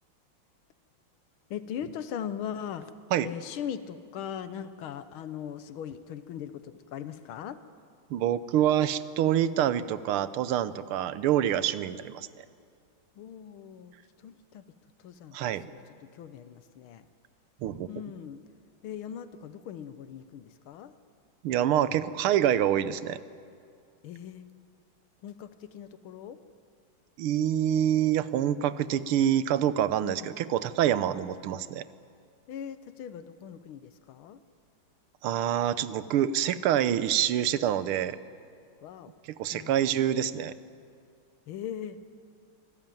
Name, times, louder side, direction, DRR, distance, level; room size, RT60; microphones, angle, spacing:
voice 1, 1.5-2.9 3.2-7.6 13.2-14.7 15.0-17.1 17.9-18.4 18.8-21.0 24.0-24.5 25.2-26.4 30.0-30.3 32.5-34.4 38.8-39.2 39.5-39.8 41.5-42.0, left 9 dB, 85° left, 13 dB, 1.7 m, -40 dB
voice 2, 8.1-12.4 15.3-15.7 17.6-17.9 21.4-23.2 27.2-31.8 35.2-38.2 39.4-40.5, right 10 dB, 85° right, 15 dB, 1.7 m, -26 dB
25.5 x 19.0 x 9.1 m, 2.3 s
omnidirectional pair, 2.3 m